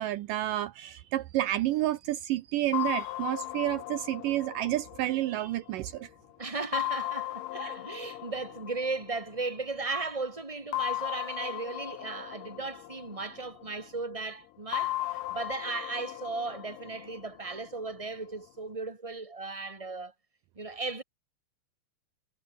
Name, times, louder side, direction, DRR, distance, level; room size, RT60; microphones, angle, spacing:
voice 1, 0.0-6.1, right 14 dB, 75° right, 2.3 m, -30 dB
sound 1, 2.7-6.1 6.7-9.7 10.7-13.8 14.7-17.8, left 16 dB, 75° left, 2.3 m, -37 dB
voice 2, 6.4-20.1 20.5-21.0, right 3 dB, 10° right, 3.3 m, -36 dB
omnidirectional pair, 4.1 m